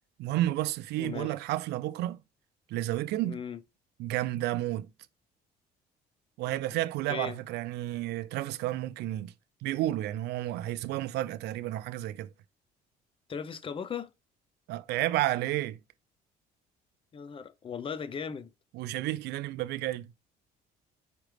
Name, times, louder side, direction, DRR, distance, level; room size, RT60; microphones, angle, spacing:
voice 1, 0.2-2.2 2.7-3.4 4.0-4.9 6.4-9.3 9.6-12.3 14.7-15.8 18.7-20.1, right 15 dB, 75° right, 0.5 m, -31 dB
voice 2, 1.0-1.3 3.2-3.6 7.1-7.4 13.3-14.1 17.1-18.5, left 6 dB, 30° left, 0.5 m, -37 dB
4.9 x 3.2 x 3.3 m
cardioid pair, 110°, 17 cm